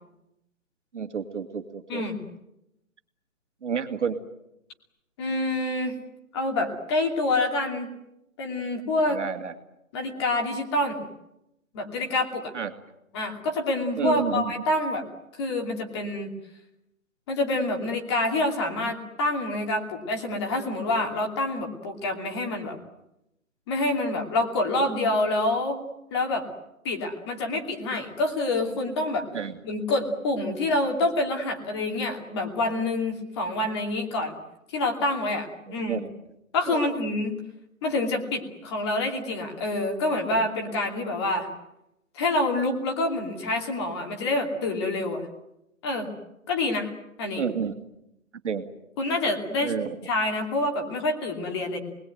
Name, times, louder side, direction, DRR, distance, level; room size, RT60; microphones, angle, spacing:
voice 1, 0.9-2.0 3.6-4.2 9.1-9.5 12.5-12.8 14.0-14.5 29.3-29.6 35.7-36.1 36.7-36.9 47.4-47.7 48.4-48.6 49.6-49.9, right 6 dB, 55° right, 6 dB, 2.7 m, -30 dB
voice 2, 5.2-6.0 6.3-7.9 8.4-9.2 9.9-11.0 11.7-12.5 13.1-15.0 15.4-16.3 17.3-22.8 23.7-25.8 26.1-26.4 26.8-29.3 29.6-34.3 34.7-36.0 36.5-37.4 37.8-41.5 42.1-45.3 45.8-46.1 46.5-46.9 47.2-47.4 49.0-49.7 50.0-51.8, left 2 dB, 20° left, 3 dB, 2.7 m, -27 dB
27.5 x 21.0 x 9.3 m, 0.86 s
hypercardioid pair, 170°, 42 cm